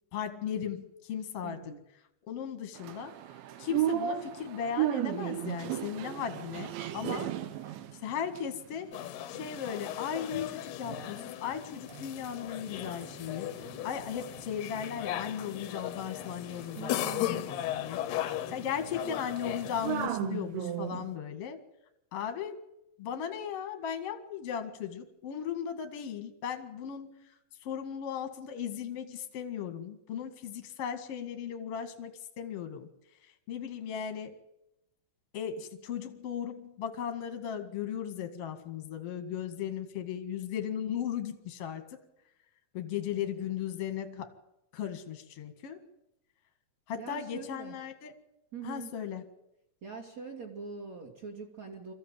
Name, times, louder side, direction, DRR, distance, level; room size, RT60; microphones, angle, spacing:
voice 1, 0.1-1.7 2.3-3.1 3.6-7.3 7.9-8.9 9.3-13.5 13.8-18.0 18.5-21.6 22.1-22.6 23.0-27.2 27.6-32.9 33.5-34.4 35.3-42.0 42.7-44.3 44.7-45.8 46.9-48.1 48.6-49.2, left 8 dB, 50° left, 7 dB, 1.8 m, -37 dB
voice 2, 1.4-1.8 16.8-17.5 43.1-43.4 46.9-47.8 48.5-48.9 49.8-51.9, right 5 dB, 45° right, 1 dB, 2.8 m, -43 dB
sound 1, 2.8-9.9 10.3-11.3 11.5-21.1, right 11 dB, 75° right, 3.3 m, -37 dB
sound 2, 8.9-20.1, left 13 dB, 75° left, 2.6 m, -37 dB
25.0 x 15.0 x 9.0 m, 0.88 s
omnidirectional pair, 5.7 m